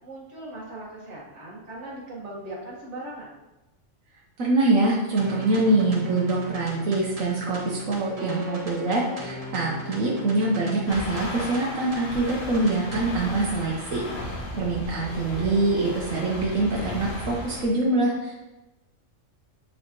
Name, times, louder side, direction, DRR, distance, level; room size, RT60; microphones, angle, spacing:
voice 1, 0.0-3.3 15.0-15.7, right 1 dB, 60° right, -5 dB, 1.9 m, -39 dB
voice 2, 4.4-18.4, right 2 dB, 85° right, -3 dB, 1.4 m, -24 dB
sound 1, 5.2-13.2, left 1 dB, 30° right, 1.1 m, -39 dB
sound 2, 10.9-17.6, left 1 dB, 75° left, 1.6 m, -35 dB
9.0 x 4.9 x 3.0 m, 1.0 s
omnidirectional pair, 1.4 m